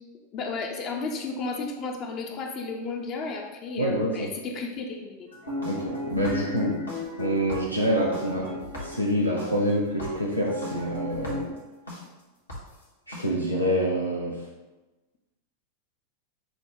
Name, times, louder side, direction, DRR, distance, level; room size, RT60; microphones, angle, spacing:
voice 1, 0.3-5.3, left 4 dB, 35° left, 2 dB, 0.5 m, -33 dB
voice 2, 3.8-4.3 5.6-6.8 7.2-8.5 8.8-11.5 13.1-14.5, equal, 90° right, -4 dB, 0.5 m, -26 dB
sound 1, 5.3-12.0 12.5-12.6 13.1-13.2, left 1 dB, 80° left, 1.1 m, -35 dB
6.3 x 2.2 x 3.4 m, 1.1 s
figure-of-eight pair, 90°, 0 cm